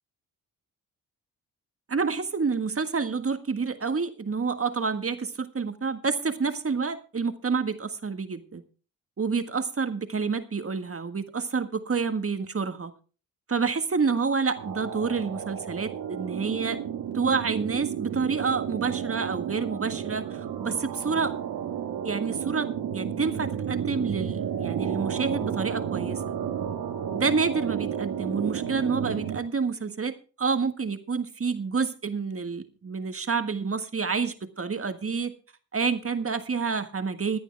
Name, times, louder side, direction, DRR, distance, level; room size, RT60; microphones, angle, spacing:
voice 1, 1.9-8.6 9.2-12.9 13.5-16.8 17.1-21.3 22.0-26.3 27.1-35.3 35.7-37.4, right 5 dB, 35° right, 8 dB, 1.6 m, -28 dB
sound 1, 14.6-29.4, right 9 dB, 75° right, 1.6 m, -32 dB
17.0 x 10.5 x 3.5 m, 0.38 s
supercardioid pair, 45°, 38 cm